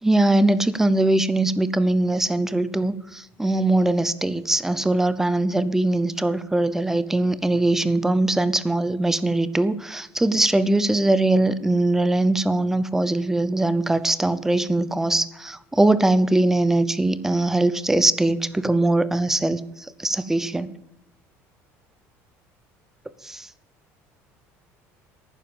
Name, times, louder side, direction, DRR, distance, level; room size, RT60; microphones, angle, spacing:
voice 1, 0.0-19.6 20.0-20.7 23.2-23.5, right 2 dB, 5° right, 15 dB, 0.7 m, -21 dB
11.0 x 9.8 x 7.0 m, 0.82 s
cardioid pair, 140°, 6 cm